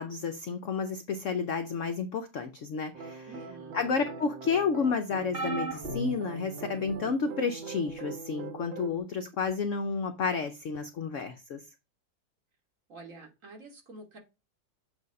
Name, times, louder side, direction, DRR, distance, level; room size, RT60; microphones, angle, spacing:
voice 1, 0.0-3.3 3.7-11.6, left 5 dB, 70° left, 7 dB, 0.7 m, -31 dB
sound 1, 2.9-9.0, right 5 dB, 80° right, 1.4 m, -42 dB
voice 2, 3.3-3.8 12.9-14.2, right 2 dB, 45° right, 2 dB, 1.8 m, -48 dB
sound 2, 5.3-7.1 7.9-8.1 9.4-9.5, right 2 dB, 25° right, 2.1 m, -37 dB
7.9 x 2.7 x 5.2 m, 0.27 s
omnidirectional pair, 2.0 m